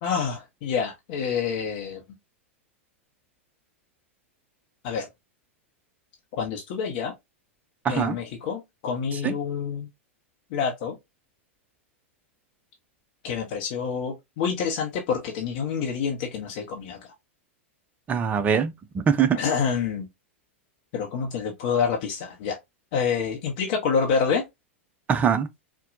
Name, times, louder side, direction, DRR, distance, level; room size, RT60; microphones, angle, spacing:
voice 1, 0.0-2.0 4.8-5.1 6.3-7.1 7.9-9.9 10.5-11.0 13.2-17.1 19.3-20.1 20.9-22.6 22.9-24.4, left 6 dB, 50° left, 0.8 m, -27 dB
voice 2, 7.8-8.2 9.2-9.3 18.1-19.4 25.1-25.5, right 7 dB, 20° right, 0.5 m, -23 dB
4.1 x 2.2 x 2.5 m
figure-of-eight pair, 95°, 7 cm